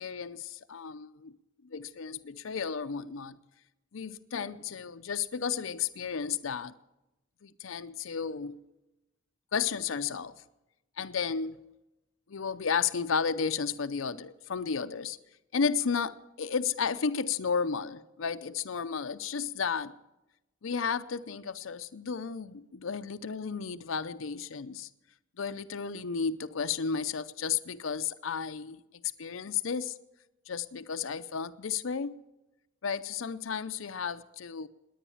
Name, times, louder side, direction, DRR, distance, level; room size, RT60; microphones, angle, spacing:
voice 1, 0.0-1.4 1.6-3.4 3.9-6.7 7.4-8.6 9.5-10.3 11.0-11.6 12.3-15.2 15.5-20.0 20.6-24.9 25.4-28.8 29.2-29.9 30.5-32.2 32.8-34.7, left 6 dB, 85° left, 0.6 m, -33 dB
20.0 x 9.4 x 7.1 m
head